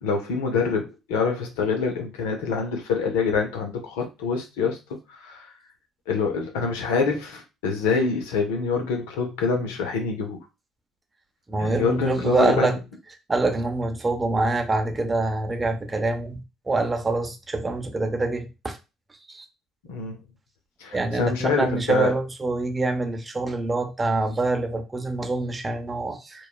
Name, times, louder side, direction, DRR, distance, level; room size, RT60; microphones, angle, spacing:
voice 1, 0.0-4.8 5.1-5.5 6.1-10.4 11.6-12.8 19.9-20.2 20.8-22.1, left 5 dB, 85° left, 0.6 m, -26 dB
voice 2, 11.5-12.8 13.3-18.8 19.3-19.4 20.9-26.5, right 2 dB, 25° right, 0.7 m, -25 dB
3.0 x 2.2 x 2.2 m
hypercardioid pair, 60°, 0 cm